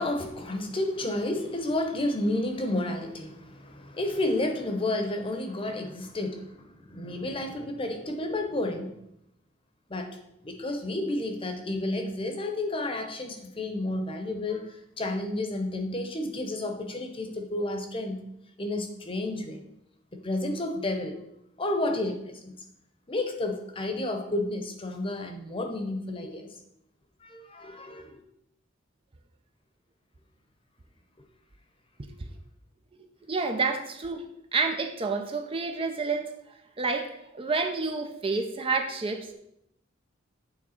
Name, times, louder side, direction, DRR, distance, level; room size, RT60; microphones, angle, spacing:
voice 1, 0.0-9.0 9.9-10.2 10.4-18.2 18.6-19.6 20.1-21.2 21.6-22.5 23.1-26.5 27.2-28.2, left 1 dB, 30° left, 5 dB, 0.9 m, -31 dB
voice 2, 33.3-34.2 34.5-36.3 36.8-39.3, right 4 dB, 30° right, 5 dB, 0.5 m, -29 dB
8.8 x 3.5 x 4.3 m, 0.77 s
head